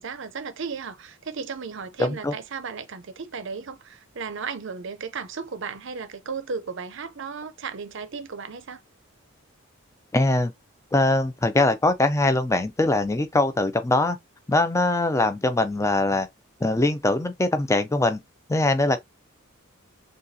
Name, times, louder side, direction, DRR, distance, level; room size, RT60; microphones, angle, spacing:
voice 1, 0.0-8.8 15.1-15.3, right 5 dB, 60° right, 0.6 m, -35 dB
voice 2, 2.0-2.3 10.1-10.5 10.9-14.2 14.5-16.3 16.6-18.2 18.5-19.0, left 2 dB, 15° left, 0.5 m, -22 dB
6.5 x 2.4 x 2.7 m
head